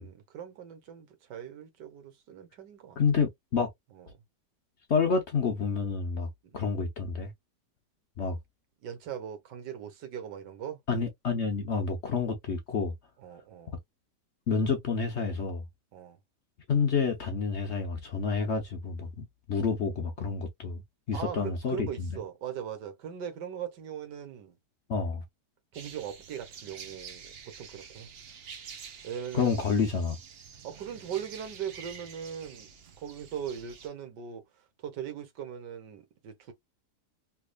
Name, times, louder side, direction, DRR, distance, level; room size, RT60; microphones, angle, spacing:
voice 1, 0.0-3.0 3.9-4.1 6.4-6.7 8.8-10.8 13.2-13.7 15.9-16.2 21.1-24.6 25.7-28.1 29.0-29.6 30.6-32.7 33.0-36.5, right 8 dB, 80° right, 1.6 m, -40 dB
voice 2, 3.0-3.7 4.9-7.3 8.2-8.4 10.9-12.9 14.5-15.7 16.7-20.8 21.1-22.1 24.9-25.2 29.3-30.2, left 5 dB, 55° left, 0.8 m, -29 dB
sound 1, 25.7-33.9, right 7 dB, 60° right, 0.6 m, -48 dB
3.4 x 3.3 x 2.2 m
omnidirectional pair, 1.8 m